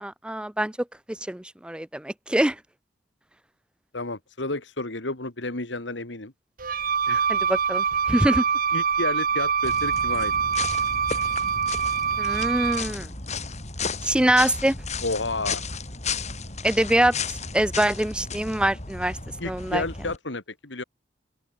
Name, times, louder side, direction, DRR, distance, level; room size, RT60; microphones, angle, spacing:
voice 1, 0.0-0.7 1.1-2.6 7.3-8.4 12.2-13.1 14.0-14.8 16.6-17.2 17.5-19.2 19.5-19.8, right 1 dB, 5° right, 0.5 m, -24 dB
voice 2, 3.9-6.3 7.1-7.3 8.7-10.3 15.0-15.6 19.4-20.8, left 2 dB, 80° left, 2.6 m, -31 dB
Wind instrument woodwind instrument, 6.6-12.9, right 6 dB, 50° right, 2.0 m, -25 dB
sound 1, 9.6-20.2, left 4 dB, 40° left, 5.6 m, -34 dB
open air
head